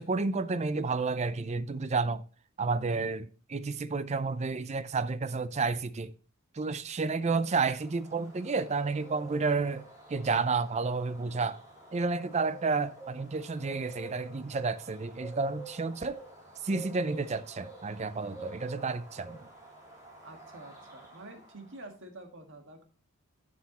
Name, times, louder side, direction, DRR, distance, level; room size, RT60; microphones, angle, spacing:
voice 1, 0.0-2.2 2.6-6.1 6.5-9.8 10.1-11.6 11.9-16.2 16.6-19.4, right 4 dB, 30° right, 0.5 m, -31 dB
Bird, 7.2-21.8, right 2 dB, 15° right, 3.0 m, -49 dB
voice 2, 20.2-22.8, right 2 dB, 60° right, 1.7 m, -48 dB
11.5 x 6.1 x 2.9 m
head